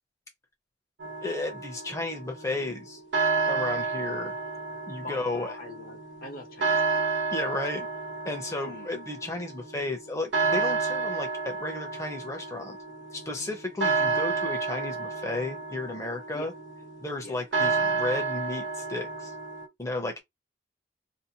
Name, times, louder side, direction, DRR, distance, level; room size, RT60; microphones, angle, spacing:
sound 1, 1.0-19.7, right 4 dB, 80° right, 1.1 m, -31 dB
voice 1, 1.2-3.0 3.4-4.3 4.9-5.6 7.3-7.9 8.3-12.8 13.1-16.5 17.0-19.3 19.8-20.2, left 2 dB, 15° left, 0.7 m, -33 dB
voice 2, 5.0-7.1 8.6-8.9 16.3-16.5 17.2-17.4, left 2 dB, 50° left, 0.9 m, -43 dB
2.7 x 2.1 x 2.8 m
head